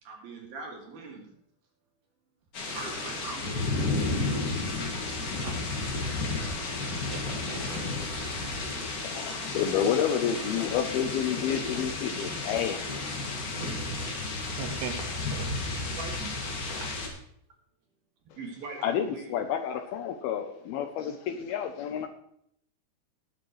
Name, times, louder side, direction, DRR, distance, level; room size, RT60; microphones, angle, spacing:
voice 1, 0.0-1.3 2.7-4.5 5.2-5.5 7.5-8.1 13.6-13.9 16.0-16.3 18.4-19.4, right 4 dB, 60° right, -1 dB, 4.1 m, -42 dB
sound 1, 2.5-17.1, left 3 dB, 50° left, 3.5 m, -32 dB
voice 2, 7.0-7.8 14.6-15.5 15.8-16.0, right 7 dB, 75° right, 6 dB, 3.2 m, -40 dB
voice 3, 9.0-12.9 13.3-13.4 18.8-22.1, left 8 dB, 80° left, 7 dB, 2.4 m, -30 dB
19.5 x 8.8 x 3.2 m, 0.69 s
omnidirectional pair, 5.0 m